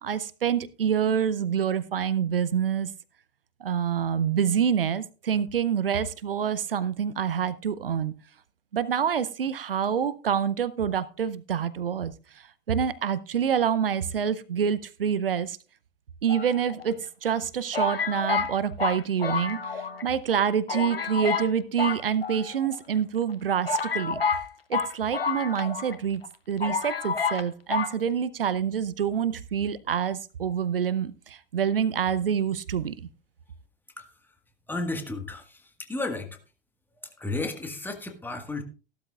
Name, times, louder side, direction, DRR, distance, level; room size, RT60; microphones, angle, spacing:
voice 1, 0.0-2.9 3.6-8.1 8.7-15.6 16.2-24.2 24.7-26.2 26.5-32.9, right 8 dB, 70° right, 17 dB, 0.7 m, -27 dB
sound 1, 16.3-17.0 17.7-20.0 20.3-20.4 20.7-21.5 21.8-22.8 23.3-23.4 23.7-26.0 26.2-26.3 26.6-27.4 27.7-27.9, left 5 dB, 85° left, 0.9 m, -29 dB
voice 2, 34.7-36.3 37.0-38.6, left 2 dB, 5° left, 6 dB, 1.6 m, -33 dB
15.0 x 12.5 x 2.4 m, 0.35 s
figure-of-eight pair, 95°, 29 cm